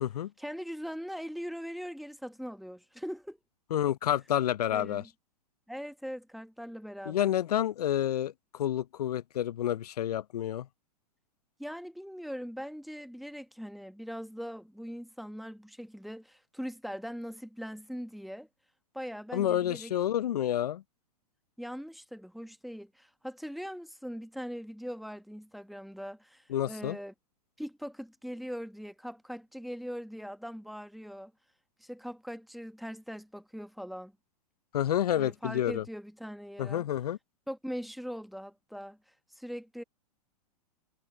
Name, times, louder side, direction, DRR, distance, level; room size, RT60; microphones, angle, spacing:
voice 1, 0.4-3.4 4.7-5.1 5.7-7.3 11.6-18.5 18.9-19.9 21.6-27.1 27.6-31.3 31.8-34.1 35.2-36.9 37.5-39.0 39.3-39.8, equal, ahead, 1.2 m, -41 dB
voice 2, 3.7-5.0 7.1-10.7 19.3-20.8 26.5-27.0 34.7-35.8 36.6-37.2, left 11 dB, 75° left, 0.5 m, -29 dB
hypercardioid pair, 110°, 20 cm